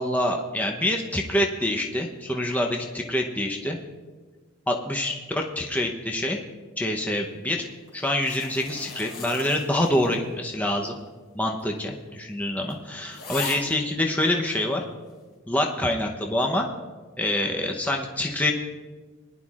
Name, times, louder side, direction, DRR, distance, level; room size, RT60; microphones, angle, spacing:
voice 1, 0.0-3.8 4.7-6.4 6.8-7.7 7.9-11.0 11.3-14.8 15.5-16.7 17.2-18.5, left 1 dB, 10° left, 1 dB, 0.8 m, -26 dB
sound 1, 7.9-10.4 10.7-10.8 11.6-11.7 12.1-12.2 12.7-12.8 13.1-13.8 14.5-14.6, left 4 dB, 70° left, 3.3 m, -38 dB
21.0 x 11.0 x 2.4 m, 1.3 s
head